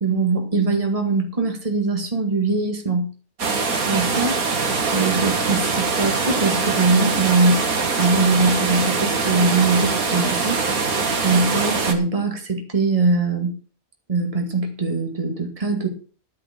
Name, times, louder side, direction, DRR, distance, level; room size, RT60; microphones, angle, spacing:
voice 1, 0.0-3.1 3.9-4.4 4.9-7.6 7.9-10.6 11.2-13.6 14.1-15.9, right 3 dB, 25° right, 3 dB, 2.2 m, -21 dB
sound 1, 3.4-11.9, right 4 dB, 70° right, 2.1 m, -23 dB
11.5 x 9.0 x 5.9 m, 0.37 s
omnidirectional pair, 1.6 m